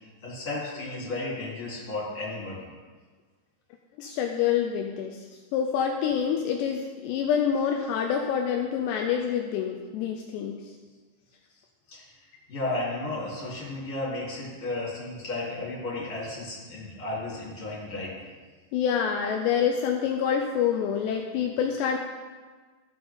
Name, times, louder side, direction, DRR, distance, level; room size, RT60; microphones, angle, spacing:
voice 1, 0.2-2.7 11.9-18.2, left 2 dB, 30° left, -7 dB, 4.0 m, -34 dB
voice 2, 4.0-5.2 5.5-10.7 18.7-22.0, left 8 dB, 85° left, 2 dB, 2.5 m, -27 dB
14.5 x 6.9 x 3.8 m, 1.4 s
omnidirectional pair, 5.6 m